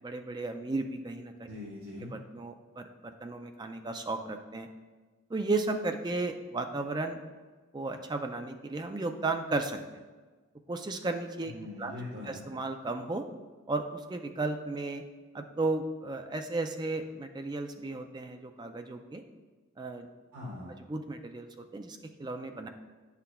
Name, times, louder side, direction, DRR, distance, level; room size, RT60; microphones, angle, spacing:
voice 1, 0.0-1.5 2.1-4.7 5.3-7.2 7.7-9.8 10.7-11.5 11.8-11.9 12.2-13.2 13.7-15.0 15.3-19.2 19.8-20.1 20.9-22.7, right 2 dB, 20° right, 6 dB, 0.3 m, -34 dB
voice 2, 1.5-2.1 11.4-12.4 20.3-20.8, left 2 dB, 85° right, -5 dB, 1.3 m, -42 dB
9.4 x 5.8 x 2.2 m, 1.3 s
head